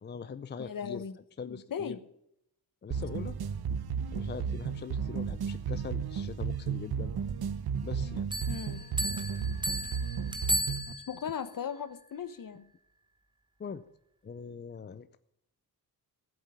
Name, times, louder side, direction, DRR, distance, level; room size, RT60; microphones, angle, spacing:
voice 1, 0.0-1.0 1.4-2.0 2.8-3.4 4.1-7.1 7.8-8.2 13.6-13.8 14.2-15.2, left 6 dB, 30° left, 12 dB, 0.5 m, -42 dB
voice 2, 0.6-1.2 1.5-2.0 8.5-8.9 11.1-12.7, left 7 dB, 60° left, 13 dB, 1.0 m, -38 dB
sound 1, 2.9-10.9, right 6 dB, 80° right, 0.9 m, -34 dB
sound 2, 8.3-11.3, right 1 dB, 10° right, 1.2 m, -34 dB
15.0 x 8.1 x 7.0 m, 0.76 s
wide cardioid pair, 145°, 38 cm